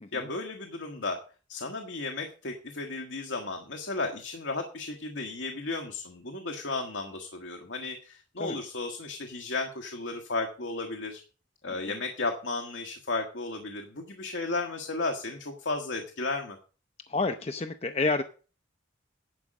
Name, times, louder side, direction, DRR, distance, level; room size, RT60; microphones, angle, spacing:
voice 1, 0.1-1.2 1.5-11.2 11.6-16.6, left 3 dB, 80° left, 3 dB, 1.4 m, -34 dB
voice 2, 17.1-18.2, left 3 dB, 30° left, 7 dB, 0.5 m, -29 dB
11.0 x 5.0 x 7.4 m, 0.36 s
head